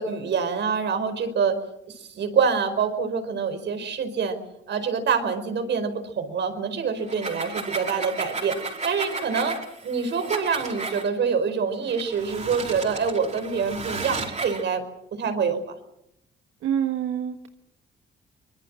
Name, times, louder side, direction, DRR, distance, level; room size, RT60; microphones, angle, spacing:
voice 1, 0.0-1.6 1.9-4.4 4.7-8.5 8.8-9.6 9.8-14.8 15.1-15.6, right 6 dB, 65° right, 9 dB, 4.9 m, -26 dB
sound 1, 7.0-11.1 11.9-14.6, right 3 dB, 35° right, 5.3 m, -34 dB
voice 2, 16.6-17.5, right 9 dB, 90° right, 5 dB, 1.5 m, -26 dB
24.5 x 21.5 x 7.6 m, 0.80 s
cardioid pair, 90°, 20 cm